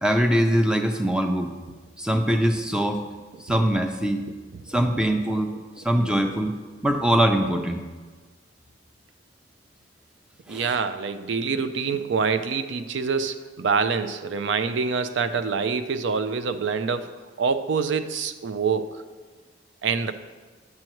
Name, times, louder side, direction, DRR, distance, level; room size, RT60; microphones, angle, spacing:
voice 1, 0.0-1.5 2.0-3.0 3.4-4.2 4.7-5.5 5.8-6.5 6.8-7.8 10.5-10.7, right 1 dB, 5° right, 5 dB, 0.5 m, -22 dB
voice 2, 10.5-17.1 17.4-19.0 19.8-20.1, right 5 dB, 75° right, 10 dB, 0.5 m, -26 dB
9.6 x 7.7 x 3.0 m, 1.4 s
head